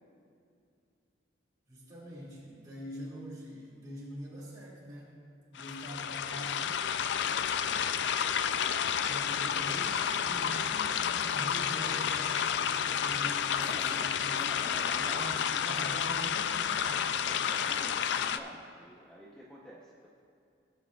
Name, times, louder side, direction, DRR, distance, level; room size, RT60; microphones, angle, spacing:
voice 1, 1.7-5.2 5.5-6.8 9.1-14.6 14.9-17.5, equal, 20° right, -6 dB, 2.2 m, -44 dB
sound 1, 5.6-18.4, left 8 dB, 65° left, 0.3 m, -30 dB
voice 2, 13.6-15.9 17.2-20.1, equal, 5° left, -5 dB, 0.7 m, -48 dB
17.0 x 8.5 x 2.3 m, 2.5 s
head